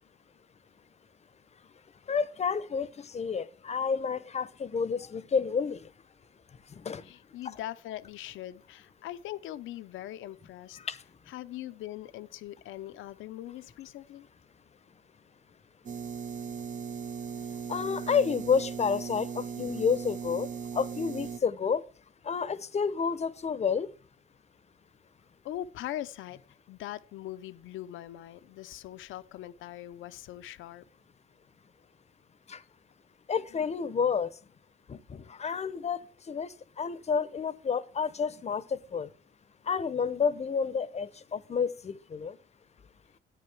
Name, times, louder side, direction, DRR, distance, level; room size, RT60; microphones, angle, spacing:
voice 1, 2.1-5.9 6.8-7.0 10.8-11.0 17.7-21.8 22.2-23.9 32.5-32.6 33.3-34.3 34.9-36.0 36.3-39.1 39.7-42.4, left 6 dB, 35° left, 0.7 m, -30 dB
voice 2, 7.0-10.8 11.3-14.3 25.4-26.4 26.7-30.8, left 13 dB, 80° left, 0.6 m, -41 dB
sound 1, 15.9-21.4, right 6 dB, 40° right, 0.6 m, -38 dB
11.0 x 8.9 x 3.4 m
cardioid pair, 90°, 20 cm